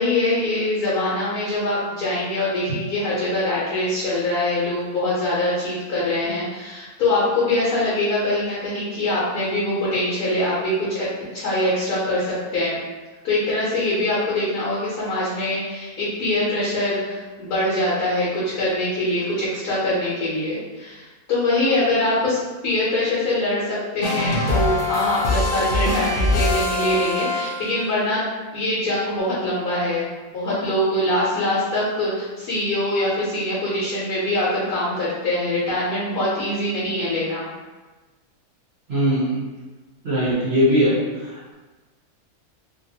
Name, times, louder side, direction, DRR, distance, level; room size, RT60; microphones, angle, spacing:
voice 1, 0.0-12.8 13.2-22.4 22.6-28.2 28.5-37.5, left 1 dB, 80° left, -8 dB, 1.3 m, -23 dB
sound 1, 24.0-27.9, left 2 dB, 60° left, 0.5 m, -23 dB
voice 2, 38.9-39.4 40.0-40.9, equal, 55° right, -8 dB, 0.9 m, -19 dB
2.9 x 2.5 x 2.8 m, 1.2 s
omnidirectional pair, 1.6 m